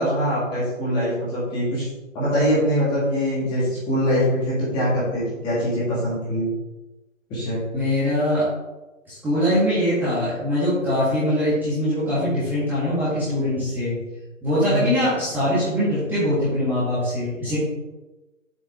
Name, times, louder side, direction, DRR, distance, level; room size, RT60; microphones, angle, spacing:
voice 1, 0.0-1.9 2.1-6.5 7.3-7.6 14.7-14.8, equal, 10° left, -7 dB, 2.0 m, -23 dB
voice 2, 7.7-8.5 9.1-14.0 14.4-17.6, left 1 dB, 5° right, -12 dB, 1.8 m, -22 dB
7.4 x 6.2 x 3.7 m, 1.1 s
hypercardioid pair, 155°, 40 cm